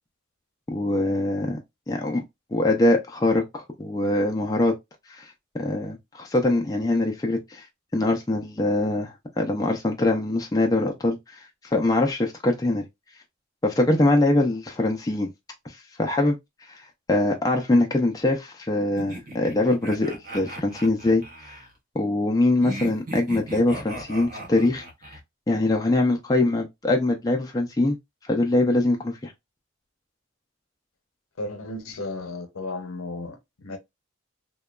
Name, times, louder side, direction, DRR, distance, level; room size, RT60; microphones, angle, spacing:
voice 1, 0.7-1.6 1.9-2.2 2.5-4.7 5.1-7.7 7.9-12.8 13.6-15.3 15.6-21.6 21.9-25.2 25.5-28.0 28.2-29.3, left 2 dB, 15° left, 0.3 m, -23 dB
sound 1, 19.0-21.7 22.6-25.2, right 1 dB, 40° right, 0.7 m, -37 dB
voice 2, 31.4-33.8, left 2 dB, 85° left, 0.7 m, -34 dB
2.8 x 2.2 x 2.2 m
head